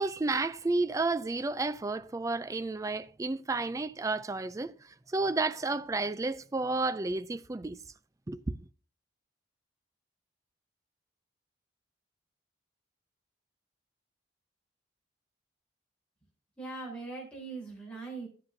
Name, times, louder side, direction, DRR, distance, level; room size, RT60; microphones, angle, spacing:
voice 1, 0.0-7.8 8.3-8.5, right 3 dB, 15° right, 0.3 m, -31 dB
voice 2, 16.6-18.3, right 3 dB, 5° left, 4.0 m, -40 dB
12.5 x 8.0 x 2.6 m
head